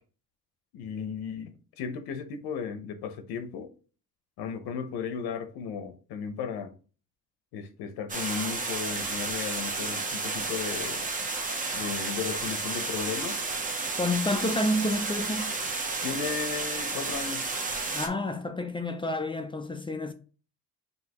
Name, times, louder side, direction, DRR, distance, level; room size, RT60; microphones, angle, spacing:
voice 1, 0.7-3.7 4.4-6.8 7.5-11.1 11.7-13.4 16.0-17.5, left 6 dB, 90° left, 0.9 m, -35 dB
sound 1, 8.1-18.1, right 3 dB, 20° right, 0.7 m, -32 dB
voice 2, 14.0-15.5 17.9-20.1, left 1 dB, 15° left, 0.4 m, -29 dB
5.5 x 2.8 x 2.9 m
cardioid pair, 125°, 37 cm